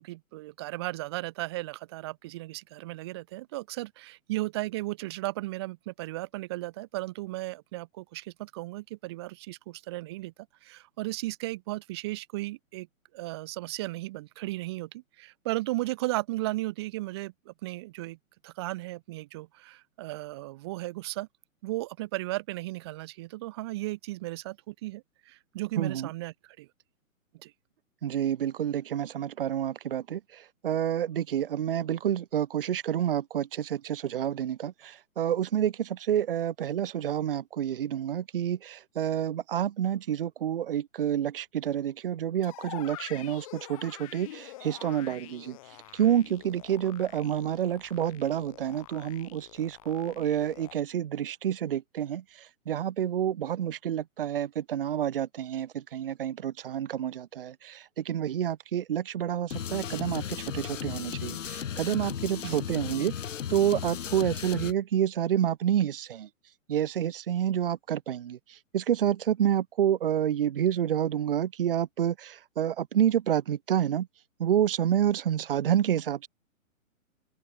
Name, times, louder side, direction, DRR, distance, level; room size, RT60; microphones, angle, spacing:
voice 1, 0.0-10.3 10.6-12.9 13.1-18.2 18.4-21.3 21.6-26.7 27.4-27.5 62.4-62.6, right 19 dB, 20° right, 1.2 m, -35 dB
voice 2, 25.8-26.1 28.0-45.6 45.9-63.1 63.5-66.3 66.7-74.1 74.4-76.3, right 10 dB, 40° right, 1.1 m, -29 dB
sound 1, 42.4-50.7, left 17 dB, 25° left, 2.1 m, -47 dB
sound 2, 59.5-64.7, left 8 dB, 60° left, 1.6 m, -35 dB
open air
hypercardioid pair, 170°, 42 cm